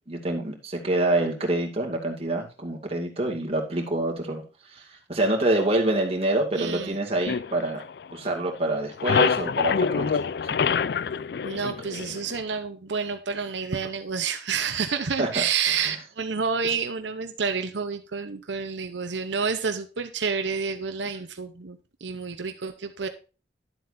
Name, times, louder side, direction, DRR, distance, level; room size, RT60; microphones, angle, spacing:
voice 1, 0.1-4.4 4.7-7.8 8.1-10.3 15.2-15.4, right 2 dB, 35° right, 2 dB, 2.3 m, -26 dB
voice 2, 6.6-7.0 9.2-9.3 11.4-23.1, right 5 dB, 85° right, 7 dB, 0.8 m, -29 dB
sound 1, 7.3-8.4 8.7-12.4, left 6 dB, 60° left, 0.4 m, -26 dB
11.5 x 7.7 x 2.6 m, 0.33 s
head